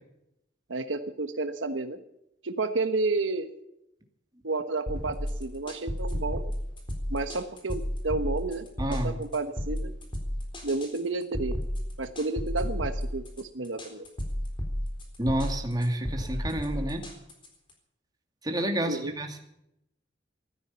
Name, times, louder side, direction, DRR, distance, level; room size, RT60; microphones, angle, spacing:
voice 1, 0.7-2.0 2.4-3.5 4.4-6.4 7.1-9.9 10.6-11.6 12.0-14.1 18.8-19.1, right 3 dB, 90° right, 8 dB, 1.3 m, -31 dB
sound 1, 4.9-17.7, equal, 25° left, 4.0 m, -33 dB
voice 2, 8.8-9.2 15.2-17.1 18.4-19.4, right 1 dB, 20° right, 4 dB, 2.4 m, -29 dB
15.0 x 13.0 x 7.0 m, 0.80 s
head